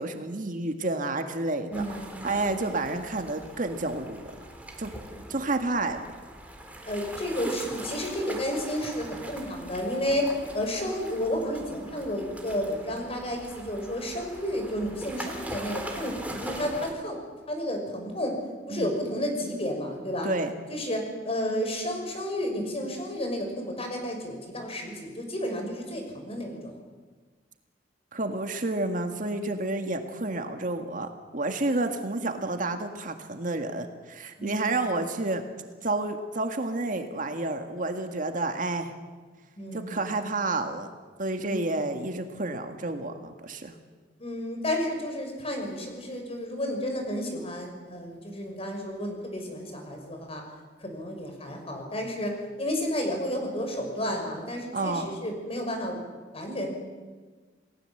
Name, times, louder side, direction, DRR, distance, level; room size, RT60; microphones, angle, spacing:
voice 1, 0.0-1.8 2.2-4.3 4.8-4.9 5.3-6.0 18.7-18.9 20.2-20.5 28.1-35.4 35.8-38.9 39.7-40.9 41.2-43.8 54.7-55.1, right 2 dB, 45° right, 6 dB, 1.8 m, -30 dB
voice 2, 1.7-2.4 6.8-17.2 17.5-18.4 18.7-20.3 20.7-26.8 34.4-34.8 39.6-40.0 41.5-41.6 44.2-50.4 50.8-56.0 56.3-56.7, equal, 35° left, 3 dB, 6.0 m, -31 dB
sound 1, 1.7-16.9, right 1 dB, 10° right, 3.6 m, -41 dB
29.0 x 18.5 x 7.9 m, 1.4 s
head